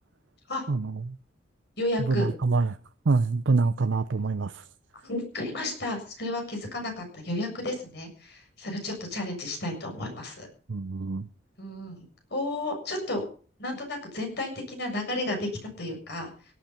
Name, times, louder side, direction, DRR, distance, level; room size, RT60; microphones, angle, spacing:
voice 1, 0.7-1.1 2.1-2.8 3.1-4.6 10.7-11.3, right 3 dB, 80° right, 0.6 m, -25 dB
voice 2, 1.8-2.3 5.0-10.5 11.6-12.0 12.3-13.3 13.6-16.3, left 1 dB, 60° left, 7.1 m, -32 dB
17.5 x 12.0 x 5.8 m
head